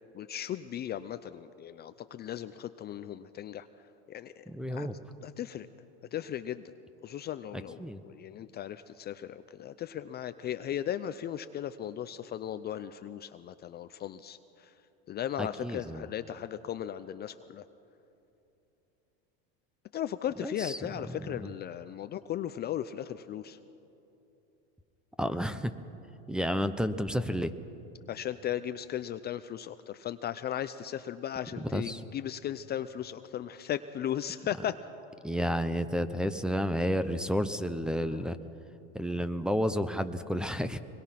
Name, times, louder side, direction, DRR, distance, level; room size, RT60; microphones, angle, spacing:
voice 1, 0.1-3.7 4.1-4.4 4.7-4.9 5.2-5.7 6.1-6.6 7.0-14.7 15.1-17.6 19.9-23.6 28.1-34.8 38.1-38.2, left 10 dB, 30° left, 11 dB, 0.5 m, -37 dB
voice 2, 4.5-5.0 7.8-8.0 15.4-16.1 20.4-21.5 25.2-25.7 26.3-27.5 31.6-32.0 35.2-38.4 38.9-40.8, equal, ahead, 12 dB, 0.8 m, -31 dB
24.5 x 21.5 x 5.9 m, 2.9 s
supercardioid pair, 110°, 33 cm